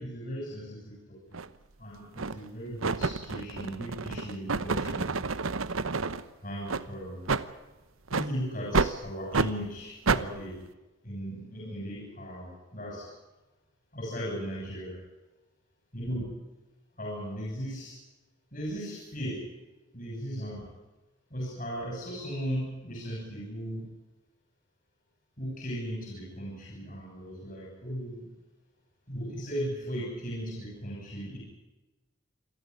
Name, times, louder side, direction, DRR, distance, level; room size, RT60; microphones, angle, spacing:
voice 1, 0.0-1.4 1.8-5.2 6.4-7.3 8.1-10.6 11.0-13.1 13.9-14.9 15.9-16.3 17.0-18.0 18.5-19.5 19.9-20.7 21.3-23.9 25.4-28.3 29.1-31.4, equal, 40° left, -3 dB, 7.6 m, -37 dB
sound 1, 1.3-1.5 2.2-2.5 2.8-6.2 6.7-6.8 7.3-7.4 8.1-8.3 8.7-8.9 9.3-9.5 10.1-10.2, right 4 dB, 80° right, 1.0 m, -29 dB
28.0 x 13.5 x 9.7 m, 1.1 s
head